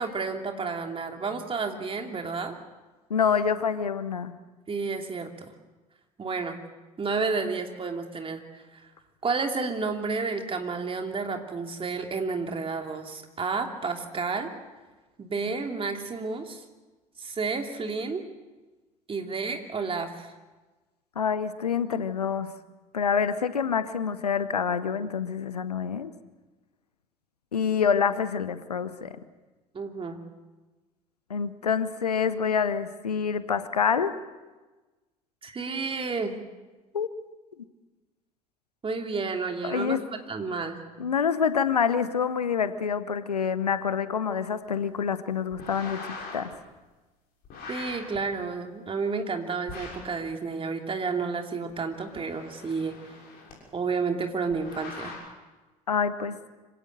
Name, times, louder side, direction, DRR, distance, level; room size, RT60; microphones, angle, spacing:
voice 1, 0.0-2.5 4.7-5.5 6.2-6.6 7.0-8.6 9.2-14.5 15.2-16.6 17.2-18.2 19.1-20.3 29.7-30.2 35.4-36.3 38.8-40.8 47.7-53.0 53.7-55.2, right 4 dB, 25° right, 4 dB, 2.9 m, -31 dB
voice 2, 3.1-4.3 21.2-22.5 22.9-26.1 27.5-29.2 31.3-34.2 36.9-37.1 39.6-40.0 41.0-46.0 46.3-46.5 55.9-56.4, left 6 dB, 80° left, 14 dB, 0.9 m, -26 dB
sound 1, 45.5-46.5 47.4-48.2 49.7-50.1 51.7-53.5 54.5-55.2, left 4 dB, 50° left, 6.6 m, -42 dB
25.5 x 17.0 x 7.7 m, 1.2 s
figure-of-eight pair, 55°, 20 cm